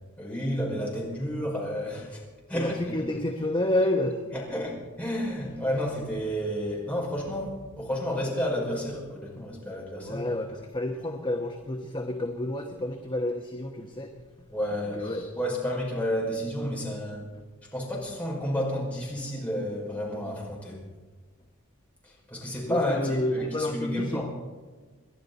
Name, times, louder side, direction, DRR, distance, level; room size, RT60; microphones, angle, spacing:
voice 1, 0.2-2.2 2.5-3.0 4.3-10.2 14.5-17.2 17.7-20.8 22.0-24.2, equal, 5° left, -4 dB, 5.5 m, -31 dB
voice 2, 2.5-4.2 10.0-14.2 14.7-15.3 22.7-24.2, left 1 dB, 20° left, 3 dB, 1.1 m, -30 dB
29.0 x 11.5 x 4.1 m, 1.4 s
head